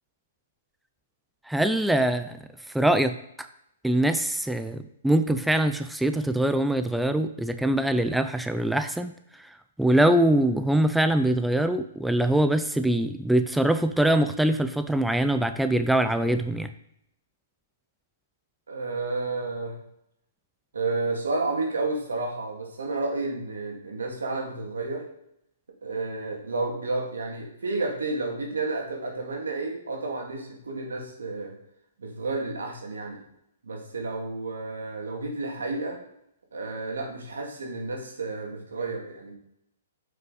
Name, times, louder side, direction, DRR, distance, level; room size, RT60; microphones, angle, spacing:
voice 1, 1.5-2.4 2.7-3.1 3.8-9.1 9.4-9.5 9.8-16.7, right 1 dB, ahead, 9 dB, 0.4 m, -23 dB
voice 2, 18.7-19.7 20.7-25.1 25.8-31.5 32.0-33.2 33.6-36.0 36.5-39.3, right 3 dB, 85° right, 1 dB, 2.3 m, -31 dB
7.8 x 5.6 x 4.1 m, 0.77 s
hypercardioid pair, 135°, 0 cm